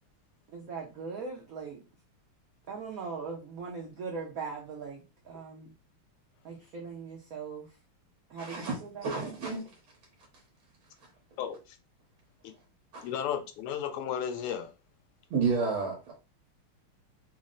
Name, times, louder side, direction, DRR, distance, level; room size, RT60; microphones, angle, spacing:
voice 1, 0.5-1.8 2.7-5.7 6.4-7.8 8.3-9.3, right 5 dB, 85° right, 0.7 m, -40 dB
voice 2, 8.4-8.7 9.0-9.6 12.9-13.1 15.3-16.1, right 4 dB, 70° right, 1.7 m, -30 dB
voice 3, 11.4-11.8 12.4-12.5 13.0-14.7, left 8 dB, 90° left, 1.6 m, -34 dB
4.2 x 2.0 x 3.7 m
omnidirectional pair, 2.4 m